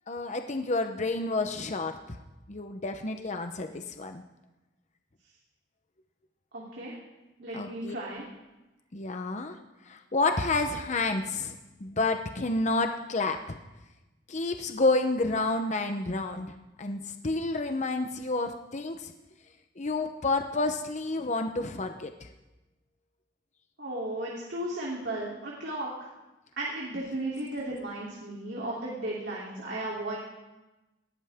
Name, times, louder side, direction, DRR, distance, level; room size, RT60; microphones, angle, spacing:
voice 1, 0.1-2.2 2.5-4.2 7.5-8.0 8.9-9.6 9.9-13.6 14.3-19.1 19.8-22.3, left 3 dB, 40° left, 6 dB, 0.8 m, -30 dB
voice 2, 6.5-7.0 7.4-8.3 23.8-26.1 26.6-30.2, right 1 dB, 65° right, -5 dB, 3.3 m, -35 dB
19.5 x 17.0 x 3.6 m, 1.0 s
head